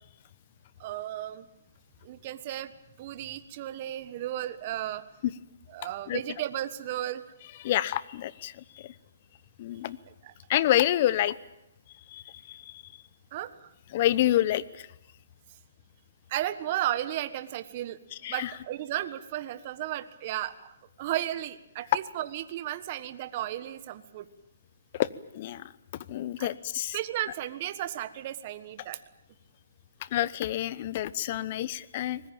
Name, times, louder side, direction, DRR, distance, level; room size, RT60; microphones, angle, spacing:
voice 1, 0.8-1.5 2.0-2.7 3.0-5.0 5.7-7.2 10.2-10.3 13.3-13.7 16.3-20.7 21.0-24.2 26.4-26.5 26.9-29.0, right 13 dB, 35° right, 12 dB, 1.4 m, -34 dB
voice 2, 7.6-8.9 9.6-10.0 10.5-11.4 12.1-12.8 13.9-14.9 18.2-18.5 25.0-25.1 25.3-25.7 26.1-27.0 30.1-32.2, left 13 dB, 40° left, 18 dB, 0.9 m, -28 dB
24.0 x 20.5 x 9.0 m, 0.88 s
hypercardioid pair, 155°, 0 cm